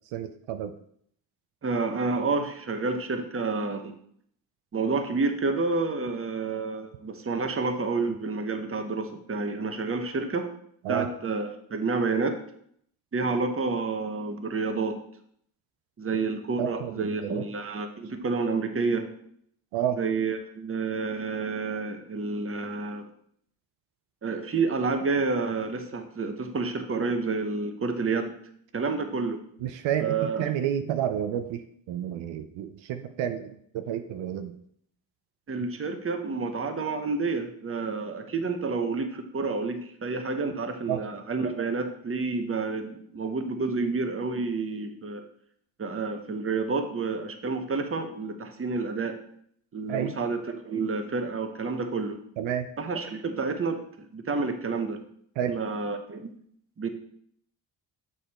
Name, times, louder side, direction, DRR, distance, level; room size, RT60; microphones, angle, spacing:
voice 1, 0.1-0.7 10.8-11.1 16.6-17.5 19.7-20.0 29.6-34.6 40.9-41.0 49.9-50.1 52.4-52.7 55.4-55.6, right 10 dB, 85° right, 8 dB, 0.6 m, -30 dB
voice 2, 1.6-3.9 4.7-10.5 10.9-12.4 13.1-15.0 16.0-19.1 20.0-23.0 24.2-28.3 28.7-29.4 30.0-30.5 35.5-45.2 45.8-49.2 49.7-52.2 52.8-55.0 55.5-56.3 56.8-56.9, right 4 dB, 30° right, 6 dB, 1.1 m, -29 dB
6.7 x 4.9 x 4.3 m, 0.67 s
cardioid pair, 70°, 44 cm